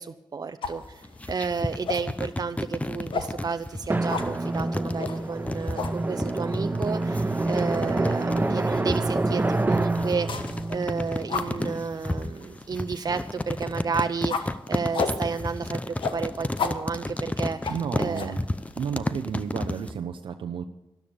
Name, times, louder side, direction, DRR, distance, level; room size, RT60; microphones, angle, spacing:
voice 1, 0.0-18.3, right 5 dB, 50° right, 8 dB, 0.7 m, -32 dB
sound 1, 0.6-19.8, left 5 dB, 80° left, 1.4 m, -37 dB
sound 2, 0.8-19.9, left 1 dB, 15° left, 0.8 m, -32 dB
Drum, 3.9-12.2, right 2 dB, 20° right, 0.9 m, -27 dB
voice 2, 17.7-18.4 18.8-20.7, right 7 dB, 85° right, 6 dB, 0.7 m, -32 dB
12.5 x 12.0 x 6.8 m, 0.96 s
cardioid pair, 60°, 9 cm